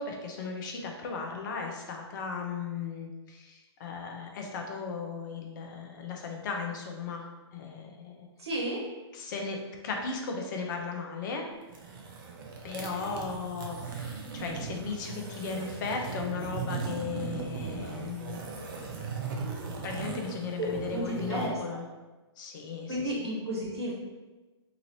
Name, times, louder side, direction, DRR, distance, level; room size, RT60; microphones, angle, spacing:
voice 1, 0.0-7.2 7.5-8.1 9.1-9.6 9.8-11.5 12.6-18.4 19.8-21.8 22.4-23.3, left 5 dB, 45° left, 2 dB, 0.6 m, -36 dB
voice 2, 8.4-8.8 20.9-21.6 22.9-23.9, right 1 dB, 70° right, -3 dB, 1.1 m, -32 dB
sound 1, 11.6-21.5, right 5 dB, 50° right, 0.6 m, -38 dB
2.9 x 2.5 x 3.0 m, 1.2 s
figure-of-eight pair, 125°, 15 cm